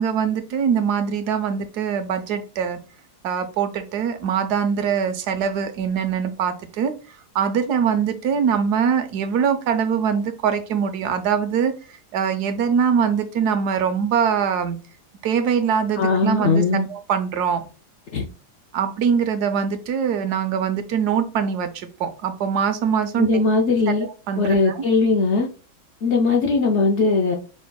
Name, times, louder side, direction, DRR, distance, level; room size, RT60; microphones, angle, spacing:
voice 1, 0.0-2.8 3.2-6.9 7.3-11.7 12.1-14.8 15.2-16.6 16.9-17.6 18.7-23.4 23.9-24.0 24.3-24.8, right 7 dB, 75° right, 9 dB, 1.2 m, -23 dB
voice 2, 16.0-16.9 18.1-18.3 23.2-24.1 24.4-25.5 26.0-27.4, left 3 dB, 60° left, 1 dB, 0.7 m, -19 dB
5.1 x 3.6 x 2.2 m, 0.35 s
omnidirectional pair, 1.7 m